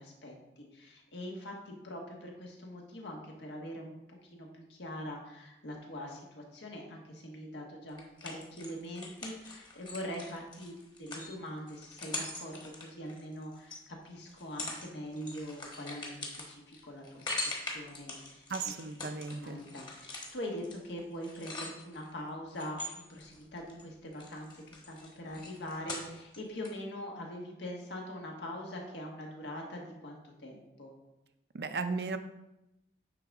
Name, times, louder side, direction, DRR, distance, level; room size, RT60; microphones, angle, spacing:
voice 1, 0.0-18.4 19.3-30.9, equal, 85° left, 0 dB, 1.5 m, -43 dB
sound 1, 8.0-13.8 14.3-14.9 15.1-22.1 22.5-23.8 24.1-26.4 26.6-26.7, left 2 dB, 25° left, 1.2 m, -42 dB
voice 2, 18.5-19.6 31.5-32.2, right 4 dB, 65° right, 9 dB, 0.5 m, -35 dB
9.9 x 3.9 x 3.6 m, 0.92 s
head